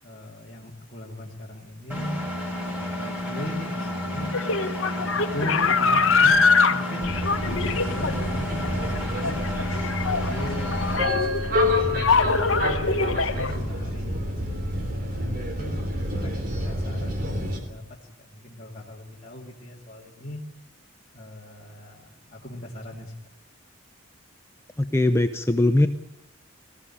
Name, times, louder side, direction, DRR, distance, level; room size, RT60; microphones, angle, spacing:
voice 1, 0.0-4.3 4.9-6.4 6.7-9.4 10.0-14.3 15.3-20.4 21.1-23.1, left 1 dB, 35° left, -4 dB, 2.5 m, -38 dB
Engine, 1.9-11.0, left 1 dB, 10° right, 5.8 m, -31 dB
sound 1, 4.2-13.5, left 4 dB, 65° left, 1.4 m, -23 dB
sound 2, 7.0-17.6, left 1 dB, 40° right, 3.4 m, -28 dB
voice 2, 24.8-25.9, left 1 dB, 10° left, 7 dB, 0.8 m, -20 dB
19.0 x 15.5 x 10.0 m, 0.80 s
head